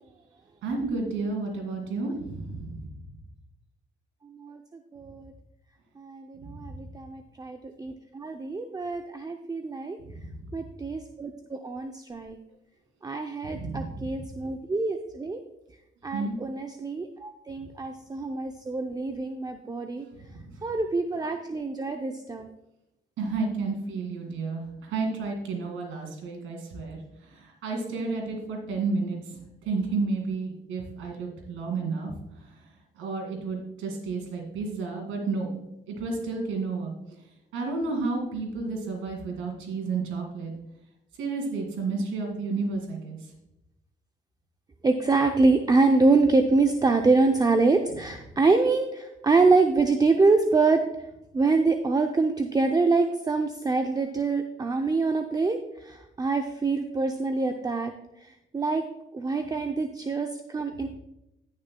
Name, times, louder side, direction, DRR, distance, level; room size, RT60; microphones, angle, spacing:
voice 1, 0.6-2.9 6.5-6.6 13.4-14.2 16.1-16.4 20.4-20.5 23.2-29.2 29.7-32.1 33.0-35.5 35.9-36.9 37.5-40.5 41.2-43.2, right 3 dB, 90° right, 2 dB, 2.5 m, -31 dB
voice 2, 4.2-5.3 6.0-10.0 10.5-12.4 13.0-15.4 16.0-20.1 20.6-22.5 44.8-50.8 51.3-57.9 58.2-58.8 59.1-60.9, right 3 dB, 20° right, 5 dB, 0.6 m, -25 dB
15.5 x 6.3 x 2.3 m, 0.89 s
cardioid pair, 90°, 20 cm